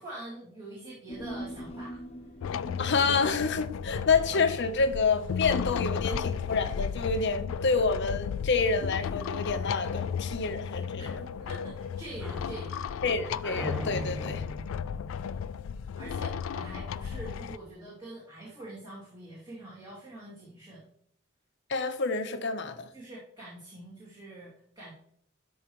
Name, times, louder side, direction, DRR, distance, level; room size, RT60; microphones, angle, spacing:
voice 1, 0.0-2.0 11.0-11.2 11.5-12.9 15.1-15.3 15.9-20.9 22.9-24.9, right 2 dB, 20° right, -8 dB, 2.6 m, -45 dB
Human voice, 1.1-5.7 6.0-6.1, right 1 dB, 30° left, 1.1 m, -44 dB
sound 1, 2.4-17.6, left 7 dB, 85° left, 0.3 m, -34 dB
voice 2, 2.8-11.2 13.0-14.4 21.7-22.9, left 4 dB, 60° left, 7 dB, 0.8 m, -28 dB
sound 2, 11.0-16.5, equal, ahead, 0.5 m, -42 dB
13.0 x 4.8 x 3.1 m, 0.66 s
head